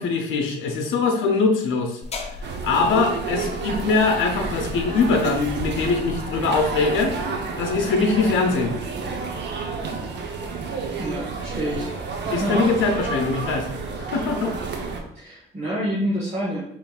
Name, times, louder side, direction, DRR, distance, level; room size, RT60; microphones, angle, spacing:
voice 1, 0.0-2.0 2.6-7.1 7.6-8.7 12.3-13.7 14.0-14.5, left 4 dB, 80° left, 3 dB, 0.7 m, -22 dB
sound 1, 2.0-7.2, left 3 dB, 35° left, 0.5 m, -38 dB
sound 2, 2.4-15.0, right 4 dB, 60° right, 0.7 m, -30 dB
voice 2, 11.0-11.9 12.2-12.9 15.1-16.7, equal, 35° right, -6 dB, 1.2 m, -28 dB
5.1 x 3.0 x 2.3 m, 0.70 s
cardioid pair, 90°, 20 cm